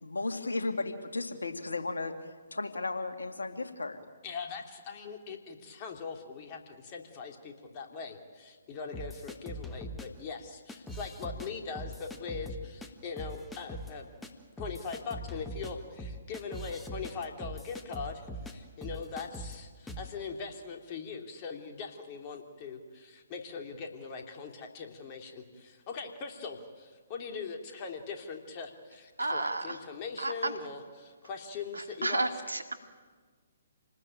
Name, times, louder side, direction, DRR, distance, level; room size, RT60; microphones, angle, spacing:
voice 1, 0.0-2.1 2.5-4.0, left 3 dB, 75° left, 6 dB, 2.4 m, -34 dB
voice 2, 4.2-14.1 14.6-32.3, left 5 dB, 30° left, 3 dB, 3.2 m, -41 dB
sound 1, 8.9-10.1 10.7-11.5 11.7-12.9 13.2-13.9 14.2-14.3 14.6-18.5 18.8-19.6 19.9-20.1, equal, 5° left, 1.7 m, -41 dB
voice 3, 29.2-29.8 30.2-30.5 31.7-32.7, right 2 dB, 80° right, 7 dB, 2.2 m, -32 dB
28.0 x 19.5 x 9.0 m, 1.5 s
figure-of-eight pair, 130°, 0 cm